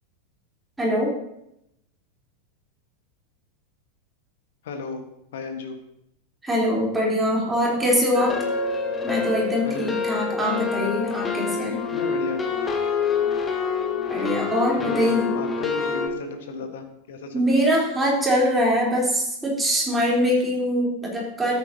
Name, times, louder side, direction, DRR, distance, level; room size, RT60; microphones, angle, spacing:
voice 1, 0.8-1.1 6.4-8.4 9.0-11.8 14.1-15.3 17.3-21.6, equal, 10° right, -4 dB, 3.9 m, -23 dB
voice 2, 4.6-5.0 5.3-5.7 9.6-9.9 11.9-12.4 14.8-17.4, left 4 dB, 55° left, 6 dB, 1.5 m, -33 dB
sound 1, 8.1-16.1, left 5 dB, 15° left, 1.2 m, -26 dB
13.5 x 8.7 x 2.9 m, 0.80 s
figure-of-eight pair, 90°, 0 cm